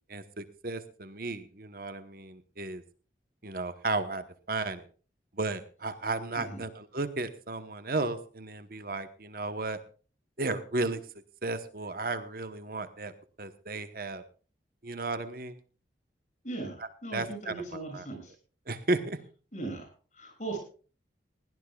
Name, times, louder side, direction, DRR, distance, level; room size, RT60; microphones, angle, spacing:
voice 1, 0.1-2.8 3.4-4.8 5.4-9.8 10.4-11.0 11.4-13.1 13.4-14.2 14.8-15.6 16.8-18.0 18.7-19.2, right 2 dB, 50° right, 10 dB, 1.0 m, -34 dB
voice 2, 16.4-16.8 17.0-18.3 19.5-19.9 20.2-20.6, right 3 dB, 40° left, 4 dB, 6.9 m, -38 dB
20.5 x 17.0 x 2.3 m, 0.39 s
head